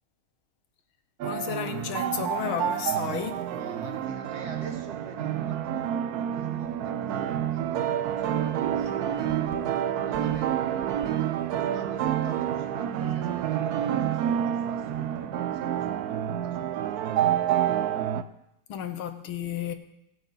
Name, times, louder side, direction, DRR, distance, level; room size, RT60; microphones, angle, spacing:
voice 1, 1.2-3.4 9.5-9.7 18.7-19.7, left 9 dB, 75° left, 1.7 m, -33 dB
sound 1, 1.2-18.2, right 10 dB, 75° right, 0.8 m, -28 dB
voice 2, 3.5-10.9 11.7-17.4, right 3 dB, 35° right, 1.5 m, -43 dB
18.5 x 7.9 x 4.0 m
omnidirectional pair, 2.3 m